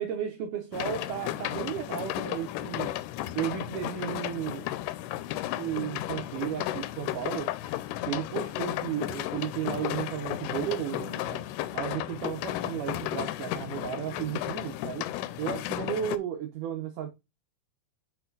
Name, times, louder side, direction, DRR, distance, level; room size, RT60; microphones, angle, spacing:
voice 1, 0.0-2.9 3.4-4.7 5.6-7.5 8.1-11.4 11.7-15.1 15.4-17.1, right 10 dB, 80° right, 1.8 m, -34 dB
sound 1, 0.7-16.2, left 14 dB, 85° left, 2.5 m, -34 dB
6.6 x 4.8 x 3.8 m
omnidirectional pair, 4.6 m